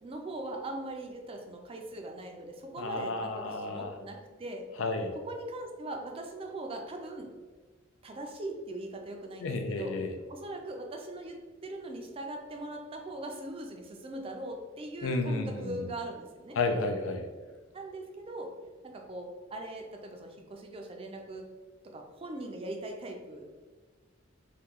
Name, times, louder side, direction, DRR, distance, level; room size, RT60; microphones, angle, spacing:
voice 1, 0.0-4.7 5.1-7.3 8.0-10.0 10.3-16.6 17.7-18.5 18.8-21.5 21.9-23.5, right 1 dB, 30° right, 3 dB, 0.4 m, -40 dB
voice 2, 2.8-3.9 4.8-5.1 9.4-10.1 15.0-15.9 16.6-17.2, left 3 dB, 90° left, 6 dB, 0.4 m, -32 dB
3.0 x 2.2 x 3.5 m, 1.4 s
head